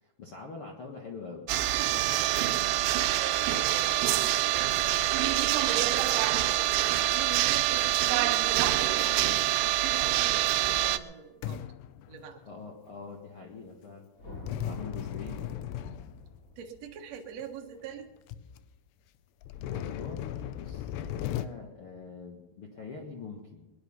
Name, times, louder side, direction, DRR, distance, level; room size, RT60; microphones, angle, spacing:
voice 1, 0.0-1.5 12.4-14.0 14.6-15.7 19.6-23.7, left 4 dB, 60° left, 0 dB, 1.5 m, -44 dB
sound 1, 1.5-11.0, right 14 dB, 80° right, 2.7 m, -26 dB
voice 2, 3.1-6.6 6.9-9.3 9.5-11.6 12.1-12.4 15.2-15.4 15.8-16.0 16.6-18.2, right 8 dB, 55° right, 2 dB, 2.0 m, -44 dB
sound 2, 9.9-10.6 11.4-12.7 14.5-16.6 17.4-17.5 18.0-18.1 18.3-18.6 19.4-21.5, left 11 dB, 90° left, 2.8 m, -37 dB
sound 3, 14.2-18.6, left 2 dB, 25° left, 2.1 m, -48 dB
21.5 x 11.0 x 5.5 m, 1.1 s
omnidirectional pair, 4.7 m